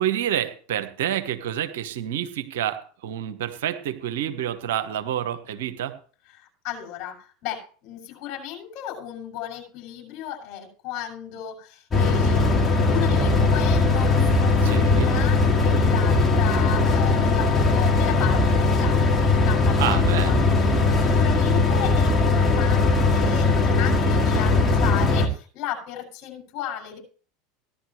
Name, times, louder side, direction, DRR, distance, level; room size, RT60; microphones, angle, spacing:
voice 1, 0.0-6.0 14.6-15.1 19.8-20.4, right 11 dB, 65° right, 10 dB, 1.1 m, -28 dB
voice 2, 6.4-12.5 12.8-20.4 21.0-27.0, left 11 dB, 50° left, -1 dB, 6.9 m, -35 dB
sound 1, 11.9-25.3, left 3 dB, 20° left, 2.3 m, -19 dB
16.5 x 11.5 x 3.2 m, 0.41 s
figure-of-eight pair, 80°, 0 cm